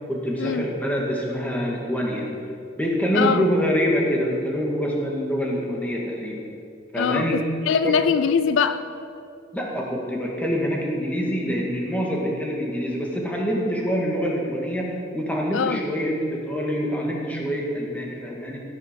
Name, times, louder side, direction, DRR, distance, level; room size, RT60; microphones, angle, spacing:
voice 1, 0.1-2.3 2.8-6.4 6.9-7.5 7.8-8.0 9.5-18.6, equal, 10° left, -2 dB, 1.8 m, -25 dB
voice 2, 7.0-8.8 15.5-15.8, left 6 dB, 70° left, 11 dB, 0.4 m, -22 dB
16.0 x 6.9 x 5.2 m, 2.5 s
head